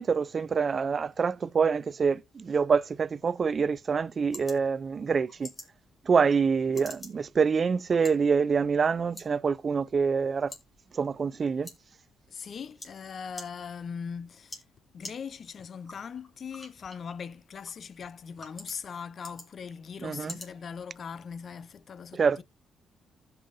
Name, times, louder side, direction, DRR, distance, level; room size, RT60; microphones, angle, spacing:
voice 1, 0.0-5.5 6.1-10.5 10.9-11.7 20.0-20.3 22.1-22.4, right 5 dB, 40° right, 0.4 m, -26 dB
sound 1, 3.4-21.4, left 2 dB, 25° left, 3.1 m, -50 dB
voice 2, 12.3-14.6 14.9-22.4, left 6 dB, 50° left, 0.5 m, -40 dB
15.5 x 5.5 x 2.5 m
cardioid pair, 90°, 0 cm